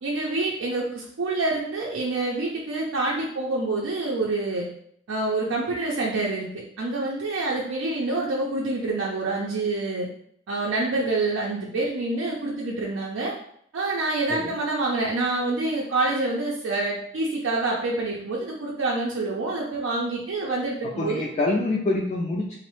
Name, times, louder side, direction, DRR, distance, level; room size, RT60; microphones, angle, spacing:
voice 1, 0.0-4.7 5.1-6.5 6.8-10.1 10.5-13.3 13.7-21.2, right 2 dB, 80° right, -3 dB, 0.5 m, -27 dB
voice 2, 21.0-22.6, left 2 dB, 35° left, -4 dB, 0.3 m, -26 dB
3.0 x 2.0 x 3.0 m, 0.66 s
head